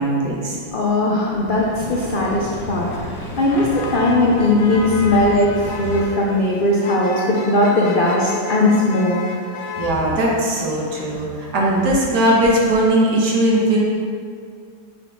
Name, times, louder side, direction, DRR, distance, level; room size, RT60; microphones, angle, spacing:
voice 1, 0.0-0.6 2.9-3.0 9.8-13.8, right 1 dB, 75° right, -4 dB, 1.7 m, -19 dB
voice 2, 0.7-2.9 3.2-9.2, left 2 dB, 80° left, -3 dB, 0.4 m, -18 dB
sound 1, 1.1-6.2, left 1 dB, 15° left, 1.0 m, -33 dB
Motor vehicle (road), 2.4-12.9, left 3 dB, 65° left, 0.9 m, -34 dB
6.4 x 4.1 x 4.5 m, 2.2 s
omnidirectional pair, 1.8 m